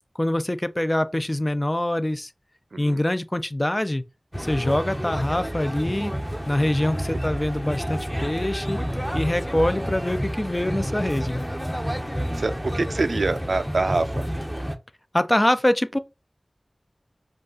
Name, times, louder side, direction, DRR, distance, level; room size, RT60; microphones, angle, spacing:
voice 1, 0.2-2.3 2.8-4.0 4.4-6.1 6.5-8.8 9.1-11.5 15.1-16.0, left 1 dB, 25° left, 0.5 m, -24 dB
sound 1, 4.3-14.8, equal, ahead, 0.8 m, -29 dB
voice 2, 12.4-14.2, right 3 dB, 90° right, 0.4 m, -25 dB
5.1 x 2.4 x 3.8 m
wide cardioid pair, 40°, 0 cm